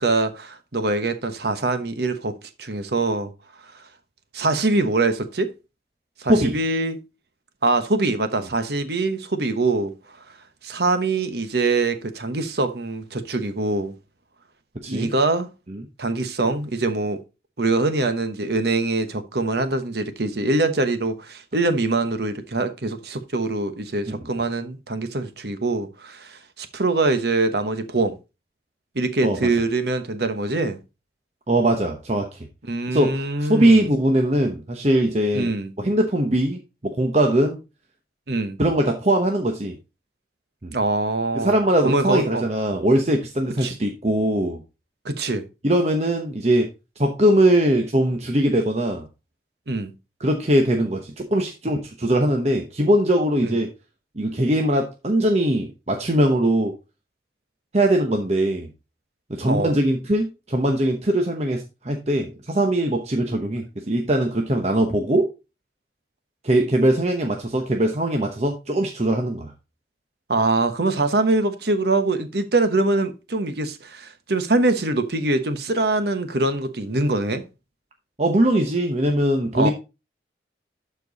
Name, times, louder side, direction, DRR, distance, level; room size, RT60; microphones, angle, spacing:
voice 1, 0.0-3.3 4.3-5.5 6.2-7.0 7.6-9.9 10.6-13.9 14.9-15.5 16.0-17.2 17.6-28.2 28.9-30.8 32.7-33.9 35.3-35.7 38.3-38.6 40.7-41.6 41.8-42.4 43.6-43.7 45.0-45.4 49.7-49.9 53.4-53.5 59.5-59.8 70.3-77.4 79.5-79.7, right 2 dB, 60° right, 1.1 m, -23 dB
voice 2, 31.5-32.4 32.9-35.5 35.8-37.6 38.6-39.8 40.6-40.7 41.3-44.6 45.6-46.7 47.0-49.0 50.2-53.7 54.2-56.8 57.7-58.7 59.3-65.3 66.4-69.5 78.2-79.7, right 1 dB, 35° right, 0.9 m, -21 dB
12.0 x 4.6 x 4.0 m
head